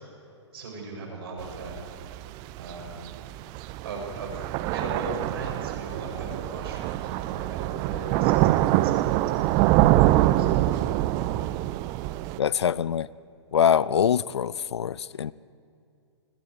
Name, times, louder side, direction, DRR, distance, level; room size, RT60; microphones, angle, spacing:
voice 1, 0.5-1.8 2.6-3.2 3.8-4.4 4.7-9.6 10.0-11.5 13.9-14.0, right 2 dB, 55° right, -1 dB, 7.6 m, -39 dB
Thunder / Rain, 1.4-12.4, right 15 dB, 25° right, 0.5 m, -24 dB
voice 2, 12.4-13.1 13.5-15.3, left 8 dB, 65° left, 21 dB, 0.5 m, -24 dB
29.0 x 21.0 x 5.0 m, 2.5 s
figure-of-eight pair, 125°, 15 cm